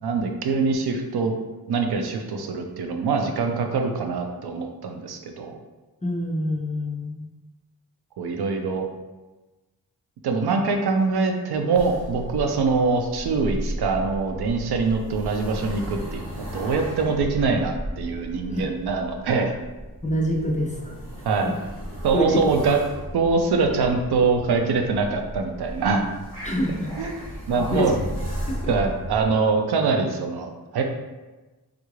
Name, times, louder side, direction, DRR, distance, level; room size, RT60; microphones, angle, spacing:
voice 1, 0.0-1.3 1.7-5.6 8.2-8.9 10.2-19.5 20.4-20.5 21.2-21.5 22.0-22.8 23.1-26.1 27.0-27.1 27.5-28.0 28.7-30.8, right 4 dB, 80° right, 4 dB, 0.5 m, -24 dB
voice 2, 6.0-7.3 18.5-18.6 20.0-20.9 22.1-22.4 26.4-27.0 27.3-27.9 28.5-28.7, left 1 dB, 20° left, -1 dB, 0.4 m, -26 dB
sound 1, 11.7-29.3, equal, 55° right, 1.5 m, -35 dB
3.5 x 2.3 x 3.1 m, 1.2 s
wide cardioid pair, 155°, 38 cm